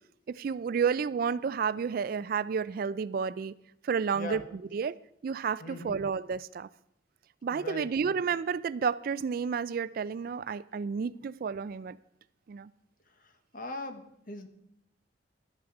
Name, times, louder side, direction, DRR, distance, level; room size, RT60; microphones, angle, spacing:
voice 1, 0.3-3.5 3.8-4.4 4.7-5.0 5.2-6.7 7.4-12.0 12.5-12.7, right 6 dB, 50° right, 17 dB, 0.3 m, -31 dB
voice 2, 5.6-6.0 7.5-8.2 13.2-14.5, left 2 dB, 45° left, 7 dB, 1.2 m, -40 dB
12.0 x 10.5 x 4.8 m, 0.78 s
head